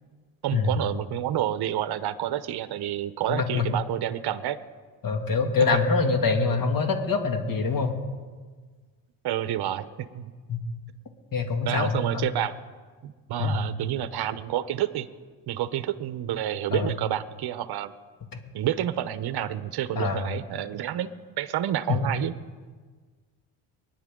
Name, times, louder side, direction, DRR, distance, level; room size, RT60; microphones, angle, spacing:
voice 1, 0.4-4.6 9.2-10.3 11.6-12.5 13.0-15.1 15.5-17.9 18.5-21.1 21.4-22.3, right 11 dB, 50° right, 13 dB, 0.9 m, -29 dB
voice 2, 3.3-3.7 5.0-7.9 10.5-10.6 11.3-12.3 13.4-13.6 16.7-16.9 20.0-20.3 21.9-22.0, left 4 dB, 40° left, 4 dB, 2.4 m, -25 dB
24.5 x 10.5 x 3.8 m, 1.5 s
supercardioid pair, 80°, 48 cm